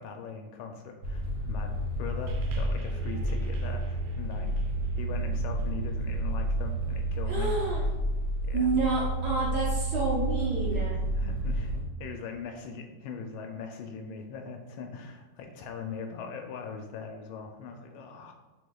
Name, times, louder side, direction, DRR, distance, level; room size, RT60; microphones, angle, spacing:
voice 1, 0.0-1.7 2.0-4.5 5.0-7.5 8.5-8.7 10.7-18.3, left 5 dB, 80° left, 3 dB, 1.3 m, -41 dB
sound 1, 1.0-11.8, right 1 dB, 40° right, 1.6 m, -30 dB
sound 2, 2.3-6.8 7.6-7.7, right 3 dB, 80° right, 1.5 m, -43 dB
voice 2, 7.3-7.8 8.5-11.0, right 3 dB, 60° right, -5 dB, 1.3 m, -29 dB
6.3 x 3.5 x 2.3 m, 1.2 s
omnidirectional pair, 2.3 m